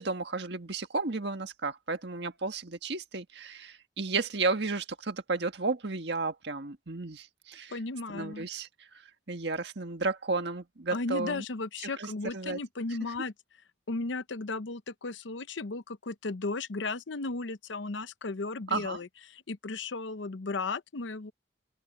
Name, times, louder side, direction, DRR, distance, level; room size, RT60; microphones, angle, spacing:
voice 1, 0.0-7.8 8.1-9.0 9.3-11.4 12.0-12.6 18.7-19.0, right 3 dB, 65° right, 1.7 m, -33 dB
voice 2, 7.7-8.5 10.9-13.3 13.9-21.3, left 3 dB, 85° left, 0.8 m, -35 dB
head